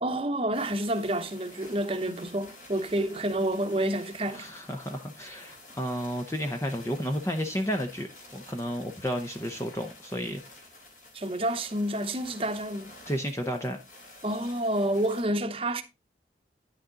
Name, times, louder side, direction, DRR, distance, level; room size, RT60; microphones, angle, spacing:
voice 1, 0.0-4.5 11.1-12.9 14.2-15.8, right 1 dB, 30° right, 1.0 m, -29 dB
sound 1, 0.5-15.2, left 2 dB, 50° left, 3.6 m, -50 dB
voice 2, 4.3-10.4 13.1-13.8, equal, 15° left, 0.8 m, -32 dB
10.0 x 6.4 x 3.8 m
head